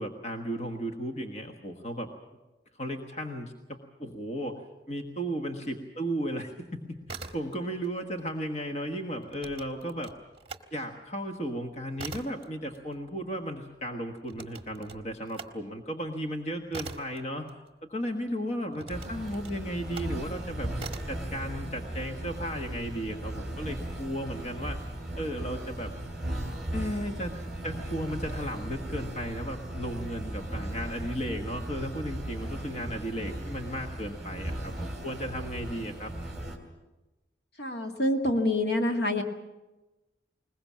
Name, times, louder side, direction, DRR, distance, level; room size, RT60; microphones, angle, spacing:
voice 1, 0.0-2.1 2.8-4.6 4.9-10.1 10.7-17.5 17.9-20.7 21.1-24.8 25.2-25.9 26.7-27.4 27.6-36.1, equal, 40° left, 4 dB, 1.4 m, -35 dB
sound 1, 6.9-7.9 8.2-10.7 11.1-18.1 18.7-20.2 20.8-21.3, right 4 dB, 30° right, 1.4 m, -44 dB
sound 2, 18.9-36.6, right 1 dB, ahead, 3.1 m, -37 dB
voice 2, 37.6-39.2, left 1 dB, 70° left, 4 dB, 2.1 m, -26 dB
21.5 x 20.5 x 7.4 m, 1.1 s
head